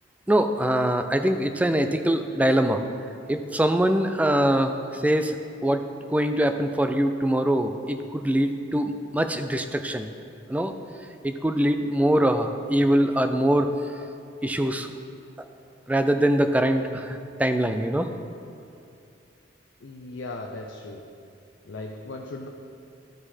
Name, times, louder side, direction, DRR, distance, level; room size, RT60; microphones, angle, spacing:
voice 1, 0.3-2.8 3.3-5.4 5.6-5.8 6.1-10.1 10.5-10.7 11.2-13.7 14.4-14.9 15.9-18.1, right 1 dB, 10° right, 7 dB, 0.3 m, -23 dB
voice 2, 19.8-21.0 21.6-22.5, left 2 dB, 85° left, 1 dB, 0.6 m, -37 dB
13.0 x 4.9 x 4.3 m, 2.5 s
head